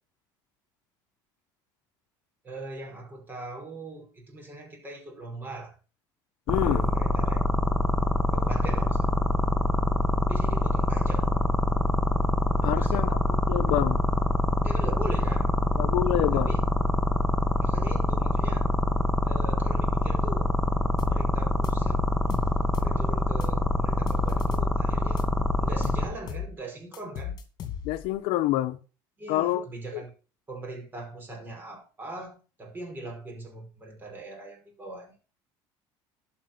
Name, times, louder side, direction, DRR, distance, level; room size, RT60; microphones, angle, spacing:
voice 1, 2.4-5.8 6.6-7.4 8.3-9.2 10.3-11.4 12.6-13.2 14.6-15.6 16.3-16.6 17.6-18.7 19.2-20.5 21.0-22.1 22.8-25.3 25.6-27.4 29.2-30.1 30.5-35.2, right 2 dB, 20° right, 5.4 m, -40 dB
voice 2, 6.5-6.9 12.6-13.2 13.5-14.0 15.8-16.6 27.8-28.8 29.3-29.6 29.9-30.0, left 15 dB, 75° left, 0.9 m, -27 dB
sound 1, 6.5-26.0, left 1 dB, 5° left, 1.3 m, -24 dB
sound 2, 21.0-21.2 21.6-23.0 23.4-24.8 25.2-26.5 26.9-28.1, left 9 dB, 45° left, 2.2 m, -36 dB
12.0 x 6.1 x 6.0 m
cardioid pair, 135°, 9 cm